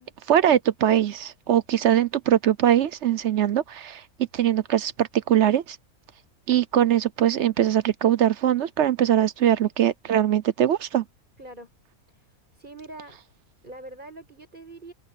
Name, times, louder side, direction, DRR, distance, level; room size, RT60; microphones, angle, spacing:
voice 1, 0.3-4.0 4.3-5.8 6.5-11.0, right 11 dB, 60° right, 0.8 m, -21 dB
voice 2, 11.4-11.7 12.1-12.3 12.5-13.2 13.6-14.9, right 2 dB, 30° right, 7.8 m, -43 dB
open air
omnidirectional pair, 1.6 m